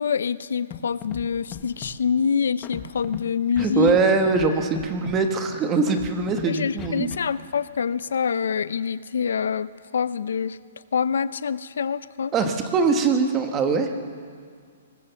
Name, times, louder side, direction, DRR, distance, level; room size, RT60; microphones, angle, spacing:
voice 1, 0.0-4.0 6.5-10.6 10.9-12.3, left 6 dB, 75° left, 16 dB, 0.6 m, -25 dB
Scratching (performance technique), 0.7-0.8 1.0-1.2 1.5-1.9 2.6-3.2 3.6-4.0 4.3-4.5 4.7-5.2 5.9-6.4 6.8-7.2, left 9 dB, 15° left, 1.2 m, -36 dB
voice 2, 3.6-7.1 12.3-13.9, right 4 dB, 15° right, 6 dB, 1.2 m, -22 dB
22.5 x 19.5 x 6.9 m, 2.1 s
hypercardioid pair, 180°, 0 cm